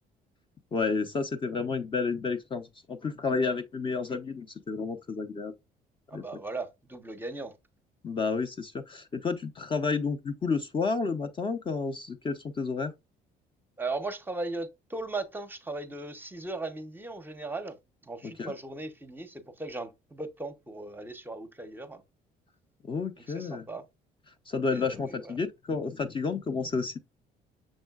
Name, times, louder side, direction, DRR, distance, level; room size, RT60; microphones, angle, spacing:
voice 1, 0.7-5.5 6.1-6.2 8.0-12.9 18.2-18.5 22.8-23.6 24.5-27.0, left 4 dB, 30° left, 0.5 m, -31 dB
voice 2, 6.1-7.5 13.8-17.8 18.0-22.0 23.3-23.8 24.7-25.3, right 2 dB, 10° right, 0.7 m, -37 dB
6.3 x 3.6 x 2.3 m
cardioid pair, 110°, 17 cm